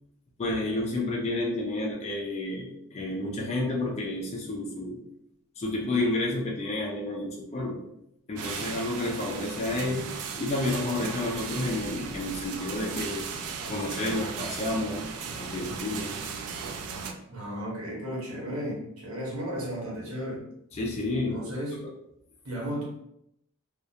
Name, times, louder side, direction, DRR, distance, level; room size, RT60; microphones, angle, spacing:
voice 1, 0.4-5.0 5.6-7.8 8.3-10.0 10.4-13.2 13.7-15.0 15.3-16.1 20.7-21.4 21.7-21.9, left 2 dB, 30° left, -2 dB, 0.4 m, -30 dB
sound 1, 8.4-17.1, right 5 dB, 85° right, 0.3 m, -36 dB
sound 2, 11.0-17.0, equal, 35° right, 0.6 m, -47 dB
voice 2, 17.3-20.4 21.3-21.7 22.4-22.8, equal, 65° right, -3 dB, 0.9 m, -34 dB
2.3 x 2.1 x 2.8 m, 0.78 s
head